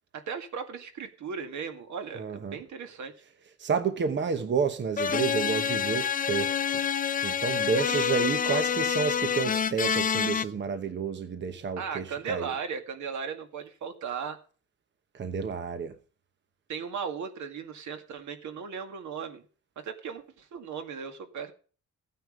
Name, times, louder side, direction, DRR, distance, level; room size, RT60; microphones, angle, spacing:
voice 1, 0.1-3.1 7.8-8.6 11.8-14.4 16.7-19.4 19.8-21.5, right 6 dB, 75° right, 2.1 m, -37 dB
voice 2, 2.1-2.6 3.6-6.5 7.2-12.5 15.1-15.9, right 6 dB, 40° right, 1.0 m, -30 dB
sound 1, 5.0-10.4, left 7 dB, 30° left, 0.5 m, -27 dB
15.5 x 9.4 x 5.1 m
wide cardioid pair, 175°, 30 cm